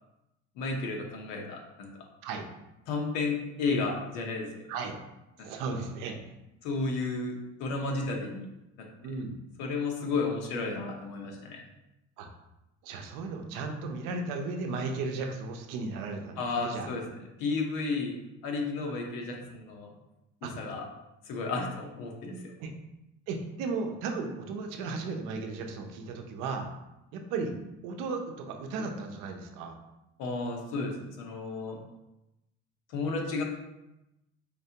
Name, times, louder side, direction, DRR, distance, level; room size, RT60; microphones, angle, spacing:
voice 1, 0.6-1.9 2.9-4.7 5.4-5.5 6.6-8.5 8.8-9.2 9.6-11.6 16.4-18.1 18.4-19.9 20.4-20.8 21.2-22.5 30.2-31.8 32.9-33.4, left 3 dB, 75° left, 1 dB, 0.9 m, -33 dB
voice 2, 5.4-6.2 9.0-9.3 12.2-12.3 12.8-16.9 19.3-19.4 20.4-20.5 22.6-22.7 23.3-26.7 27.1-27.6 27.8-29.8, right 4 dB, 85° right, 4 dB, 0.7 m, -35 dB
4.3 x 3.3 x 2.8 m, 0.93 s
cardioid pair, 170°, 31 cm